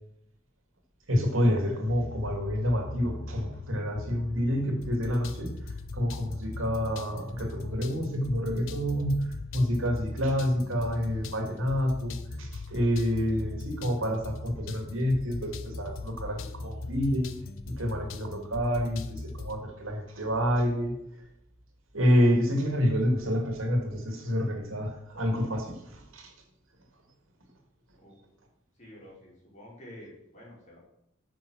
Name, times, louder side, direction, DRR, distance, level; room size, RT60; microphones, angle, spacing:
voice 1, 1.1-17.3 17.8-20.9 21.9-26.3, equal, 75° right, 3 dB, 2.3 m, -28 dB
sound 1, 1.9-19.6, left 3 dB, 75° left, 0.7 m, -39 dB
voice 2, 28.8-30.8, left 1 dB, 35° left, -5 dB, 4.5 m, -49 dB
9.3 x 6.1 x 6.3 m, 0.76 s
head